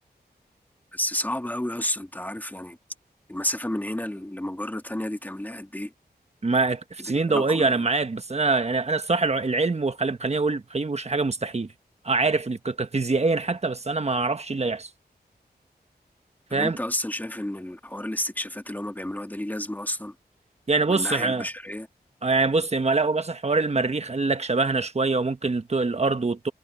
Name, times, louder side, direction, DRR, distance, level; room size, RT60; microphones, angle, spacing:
voice 1, 0.9-2.8 3.3-5.9 7.3-7.7 16.5-20.1 20.9-21.9, left 1 dB, 10° left, 1.9 m, -31 dB
voice 2, 6.4-11.7 12.0-14.9 16.5-16.8 20.7-21.5 22.2-26.5, right 3 dB, 40° right, 1.3 m, -24 dB
wide cardioid pair, 85°, 17 cm